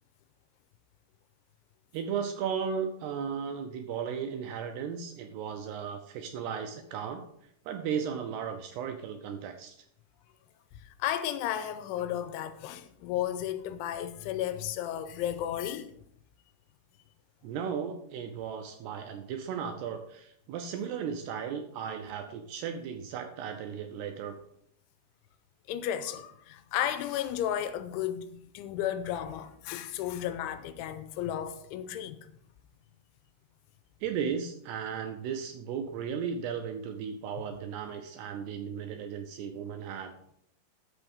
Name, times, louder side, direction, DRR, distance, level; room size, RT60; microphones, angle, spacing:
voice 1, 1.9-7.3 7.7-9.8 17.4-24.4 34.0-40.1, right 7 dB, 80° right, 2.5 m, -35 dB
voice 2, 10.8-15.9 25.7-28.3 28.5-32.2, left 11 dB, 90° left, 3.1 m, -33 dB
13.0 x 5.6 x 5.3 m
omnidirectional pair, 5.5 m